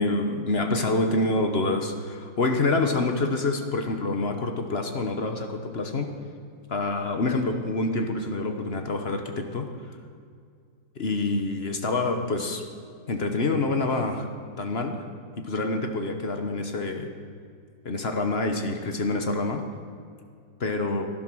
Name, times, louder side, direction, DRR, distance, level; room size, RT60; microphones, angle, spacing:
voice 1, 0.0-6.1 6.7-9.7 11.0-12.6 13.1-14.3 14.6-15.0 15.4-17.1 17.8-19.6 20.6-21.1, left 2 dB, 40° left, 5 dB, 1.0 m, -26 dB
16.0 x 11.5 x 6.2 m, 2.2 s
omnidirectional pair, 2.0 m